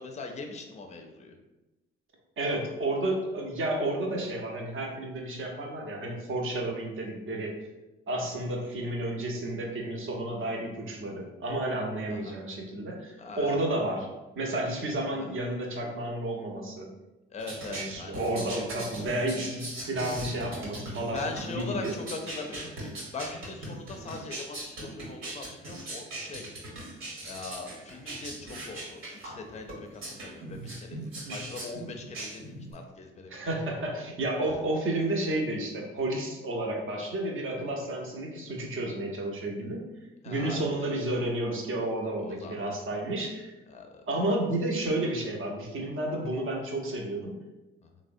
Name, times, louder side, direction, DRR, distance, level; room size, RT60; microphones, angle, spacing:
voice 1, 0.0-1.4 12.1-12.4 13.2-13.6 15.1-15.3 17.3-18.2 21.1-26.5 27.2-33.6 34.4-34.6 40.2-40.9 42.2-42.6 43.7-44.0 47.8-47.9, left 3 dB, 25° left, 4 dB, 0.5 m, -41 dB
voice 2, 2.4-7.5 8.1-14.1 14.4-16.9 17.7-21.9 31.2-31.4 33.3-39.8 40.2-43.5 44.1-47.4, right 1 dB, 45° right, 0 dB, 0.8 m, -31 dB
sound 1, 17.4-32.7, right 1 dB, 65° right, 1.2 m, -40 dB
3.3 x 2.1 x 2.5 m, 1.0 s
hypercardioid pair, 50°, 29 cm